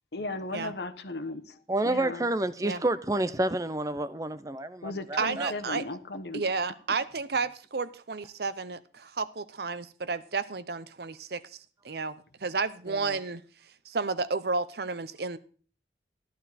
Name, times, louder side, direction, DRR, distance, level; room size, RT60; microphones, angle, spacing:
voice 1, 0.1-2.3 4.8-6.4, left 2 dB, 65° left, 1.2 m, -36 dB
voice 2, 1.7-5.5 12.9-13.1, right 2 dB, 20° right, 0.6 m, -29 dB
voice 3, 5.2-5.8 6.3-13.4 13.8-15.4, right 4 dB, 60° right, 0.8 m, -32 dB
14.0 x 11.5 x 4.2 m
head